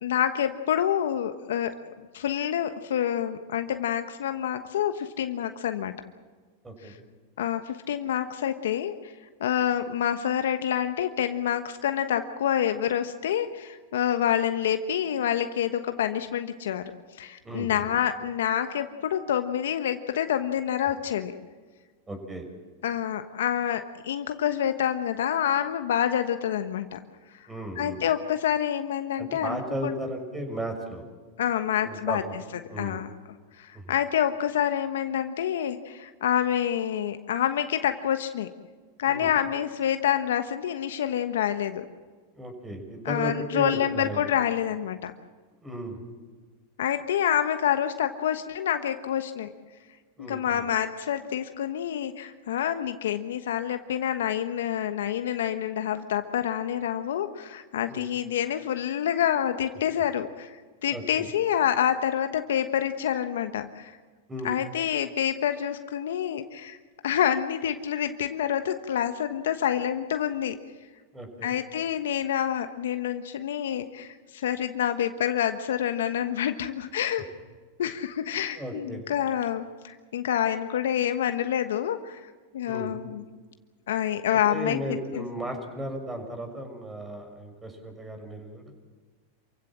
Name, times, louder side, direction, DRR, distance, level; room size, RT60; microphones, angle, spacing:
voice 1, 0.0-5.9 7.4-9.1 9.4-16.8 17.2-21.3 22.8-27.0 27.8-29.9 31.4-32.2 32.8-33.1 33.6-38.5 39.0-41.9 43.0-45.1 46.8-49.5 50.3-60.6 60.8-64.0 64.4-66.8 67.0-70.6 71.4-77.2 77.8-82.2 82.5-83.2 83.9-84.8 85.1-85.2, left 10 dB, 75° left, 8 dB, 1.2 m, -27 dB
voice 2, 17.4-17.9 22.1-22.4 27.5-28.0 29.2-31.0 31.8-32.2 32.7-33.0 39.0-39.3 42.3-44.2 45.6-46.0 50.2-50.6 57.9-58.1 60.9-61.3 64.3-64.5 71.1-71.5 78.6-79.0 82.7-82.9 84.5-88.6, right 1 dB, 15° right, 5 dB, 6.2 m, -35 dB
27.5 x 16.0 x 7.5 m, 1.4 s
hypercardioid pair, 105°, 0 cm